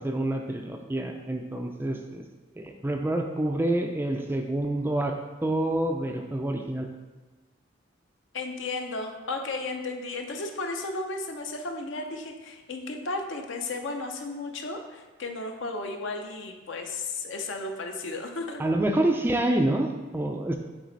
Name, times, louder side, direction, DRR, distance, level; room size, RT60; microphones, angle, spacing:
voice 1, 0.0-2.2 2.5-5.2 5.4-6.9 18.6-20.6, right 1 dB, 10° right, 3 dB, 0.3 m, -27 dB
voice 2, 8.3-18.6, left 3 dB, 65° left, 4 dB, 0.7 m, -34 dB
7.1 x 3.3 x 4.0 m, 1.2 s
head